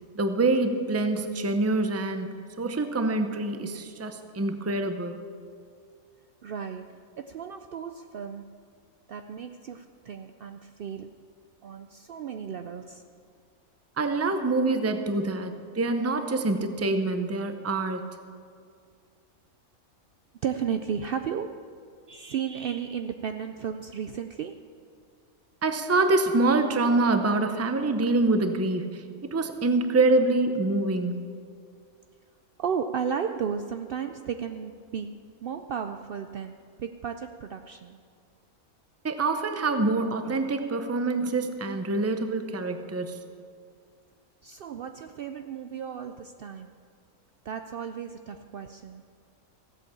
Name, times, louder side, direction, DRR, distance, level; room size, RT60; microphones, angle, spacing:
voice 1, 0.1-2.3 2.6-5.2 14.0-18.0 25.6-29.0 29.3-31.2 39.0-43.2, right 2 dB, 20° right, 7 dB, 0.4 m, -25 dB
voice 2, 6.4-8.6 9.1-11.1 11.6-13.0 20.4-21.6 22.1-24.7 32.6-38.0 44.4-46.7 47.4-49.0, right 7 dB, 85° right, 7 dB, 0.5 m, -34 dB
15.5 x 8.3 x 7.1 m, 2.2 s
omnidirectional pair, 1.5 m